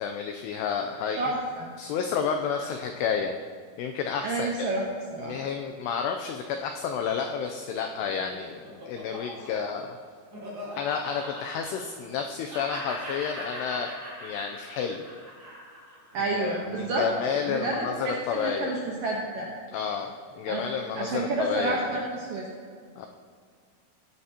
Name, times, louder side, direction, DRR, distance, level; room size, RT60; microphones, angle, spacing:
voice 1, 0.0-1.2 1.8-3.4 3.8-4.7 5.2-10.0 10.8-15.0 16.4-18.7 19.7-22.0 23.0-23.1, left 6 dB, 90° left, 4 dB, 2.3 m, -31 dB
voice 2, 1.2-1.7 4.2-5.4 16.1-17.1 17.4-19.5 20.5-22.5, right 2 dB, 75° right, -2 dB, 2.0 m, -30 dB
Laughter, 8.3-12.2 12.5-16.9, equal, 30° right, 2.2 m, -41 dB
16.5 x 11.0 x 2.9 m, 2.1 s
omnidirectional pair, 5.5 m